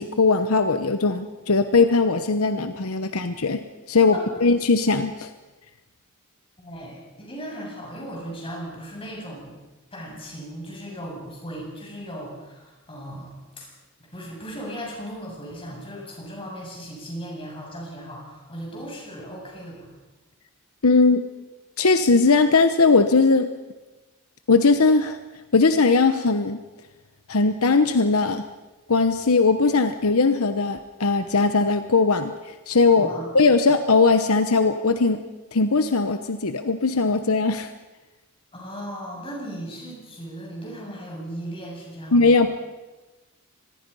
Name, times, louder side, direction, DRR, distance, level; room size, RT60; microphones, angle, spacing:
voice 1, 0.0-3.6 3.9-5.3 20.8-21.3 21.8-23.5 24.5-25.2 25.5-26.6 27.3-28.4 28.9-32.3 32.7-33.1 33.3-35.2 35.5-37.7 42.1-42.5, left 4 dB, 75° left, 9 dB, 1.0 m, -19 dB
voice 2, 4.1-4.4 6.6-9.6 9.9-13.7 14.1-19.9 32.8-33.3 38.5-42.5, equal, 25° left, -1 dB, 7.6 m, -37 dB
25.0 x 21.0 x 5.6 m, 1.1 s
head